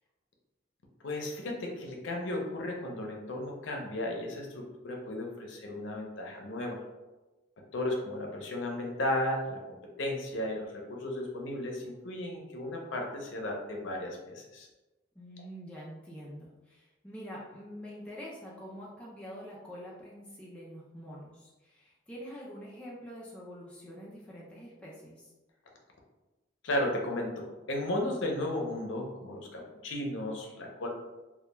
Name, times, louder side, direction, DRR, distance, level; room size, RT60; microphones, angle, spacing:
voice 1, 1.0-6.8 7.7-14.7 26.6-30.9, left 1 dB, 85° left, 0 dB, 0.6 m, -34 dB
voice 2, 15.1-25.3, equal, 5° left, -6 dB, 0.3 m, -46 dB
2.2 x 2.2 x 2.9 m, 1.1 s
head